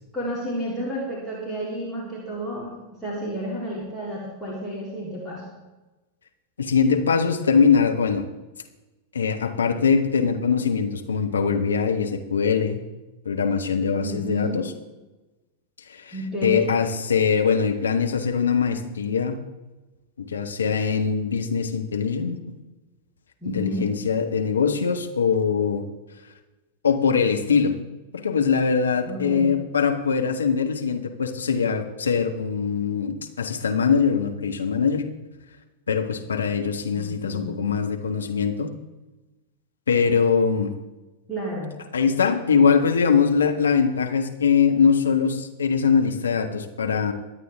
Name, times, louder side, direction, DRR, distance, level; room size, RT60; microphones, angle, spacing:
voice 1, 0.1-5.4 14.0-14.6 16.1-16.7 23.4-23.9 29.1-29.6 37.0-37.7 41.3-41.7, right 1 dB, 5° left, -6 dB, 3.6 m, -31 dB
voice 2, 6.6-8.3 9.1-12.8 13.2-14.7 15.9-16.2 16.4-19.4 20.3-22.4 23.4-25.8 26.8-27.8 28.1-35.0 35.9-38.7 39.9-40.7 41.9-47.1, left 6 dB, 70° left, 4 dB, 1.5 m, -22 dB
23.0 x 9.3 x 3.6 m, 1.1 s
figure-of-eight pair, 90°, 0 cm